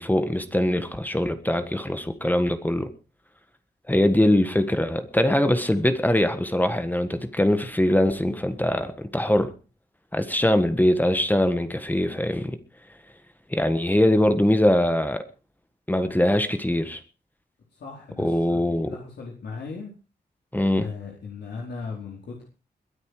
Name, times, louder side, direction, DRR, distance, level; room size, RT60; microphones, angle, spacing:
voice 1, 0.0-2.9 3.9-9.5 10.1-12.6 13.5-15.2 15.9-17.0 18.2-18.9 20.5-20.9, left 1 dB, 10° left, 9 dB, 1.6 m, -22 dB
voice 2, 17.8-19.9 20.8-22.4, left 4 dB, 75° left, -1 dB, 4.5 m, -37 dB
22.0 x 9.7 x 4.9 m, 0.35 s
cardioid pair, 90°, 18 cm